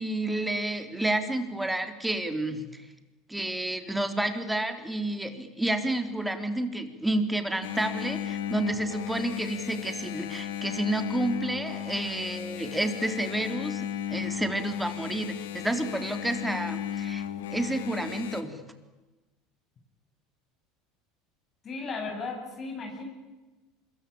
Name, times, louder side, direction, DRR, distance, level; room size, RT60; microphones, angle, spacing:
voice 1, 0.0-2.9 3.3-17.2 17.5-18.6, right 1 dB, 5° right, 7 dB, 3.7 m, -30 dB
Engine, 7.6-18.4, left 10 dB, 80° left, 2.0 m, -35 dB
voice 2, 21.6-23.0, left 4 dB, 40° left, 2 dB, 7.7 m, -35 dB
26.0 x 23.0 x 8.8 m, 1.2 s
hypercardioid pair, 80°, 0 cm